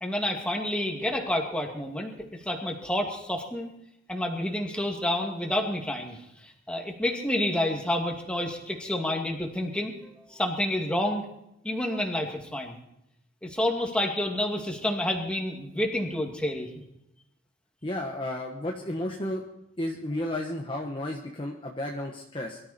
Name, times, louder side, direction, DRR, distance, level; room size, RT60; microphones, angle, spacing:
voice 1, 0.0-3.7 4.1-11.2 11.6-12.8 13.4-16.7, left 1 dB, 5° left, 0 dB, 2.4 m, -29 dB
voice 2, 17.8-19.4 19.8-22.6, left 1 dB, 25° left, 1 dB, 1.4 m, -32 dB
23.5 x 13.0 x 4.4 m, 0.82 s
head